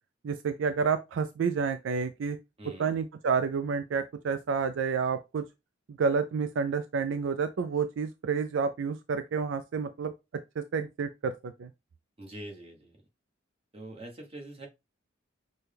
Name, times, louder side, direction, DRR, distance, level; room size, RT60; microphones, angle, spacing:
voice 1, 0.2-2.4 2.8-5.4 5.9-10.1 10.6-11.7, right 5 dB, 70° right, 0.4 m, -29 dB
voice 2, 2.6-3.0 12.2-13.0 13.7-14.7, right 1 dB, 30° right, 1.3 m, -44 dB
6.0 x 2.2 x 3.4 m
head